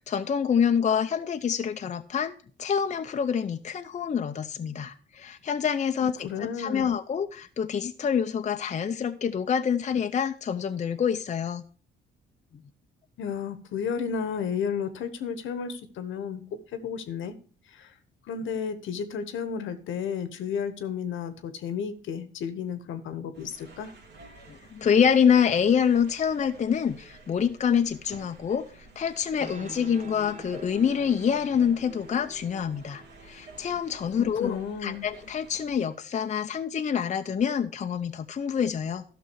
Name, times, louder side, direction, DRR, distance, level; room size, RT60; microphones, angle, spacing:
voice 1, 0.1-11.6 24.5-28.7 29.0-39.0, left 7 dB, 35° left, 7 dB, 0.7 m, -26 dB
voice 2, 6.2-6.9 13.2-16.4 16.7-17.3 17.7-17.9 18.3-23.9 34.2-35.1, left 7 dB, 75° left, 11 dB, 1.2 m, -32 dB
sound 1, 23.3-35.8, right 3 dB, 60° right, 2.3 m, -51 dB
sound 2, 29.1-36.3, right 3 dB, 35° right, 1.5 m, -48 dB
12.5 x 6.1 x 4.6 m, 0.40 s
cardioid pair, 90°, 20 cm